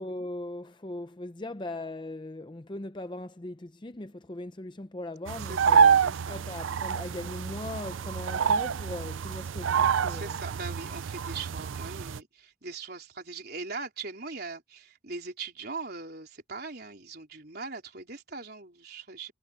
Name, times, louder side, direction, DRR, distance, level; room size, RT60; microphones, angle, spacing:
voice 1, 0.0-6.0 6.3-10.4, left 1 dB, 25° left, 0.6 m, -39 dB
sound 1, 5.3-12.2, right 6 dB, 80° right, 0.5 m, -27 dB
voice 2, 5.4-6.4 9.9-19.3, right 4 dB, 50° right, 4.3 m, -40 dB
head